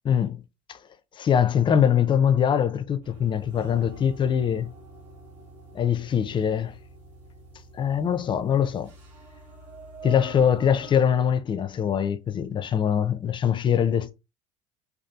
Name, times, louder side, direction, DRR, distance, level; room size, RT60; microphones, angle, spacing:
voice 1, 0.0-0.4 0.7-0.8 1.2-4.7 5.7-6.7 7.7-8.9 10.0-14.1, left 8 dB, 30° left, 0.4 m, -23 dB
sound 1, 3.0-11.0, right 3 dB, 75° right, 1.0 m, -46 dB
2.6 x 2.4 x 2.3 m
hypercardioid pair, 75°, 16 cm